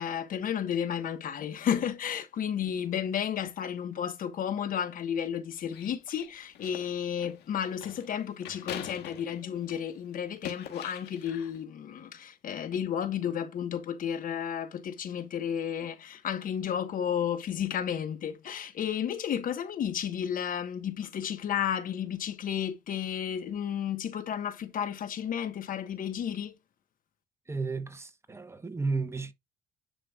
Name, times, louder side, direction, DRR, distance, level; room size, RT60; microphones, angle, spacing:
voice 1, 0.0-26.5, left 9 dB, 55° left, 1.3 m, -32 dB
sound 1, 5.6-9.9 10.3-11.6, left 10 dB, 75° left, 2.0 m, -43 dB
voice 2, 27.5-29.3, right 3 dB, 15° right, 1.1 m, -33 dB
10.0 x 5.2 x 2.4 m
cardioid pair, 110°, 17 cm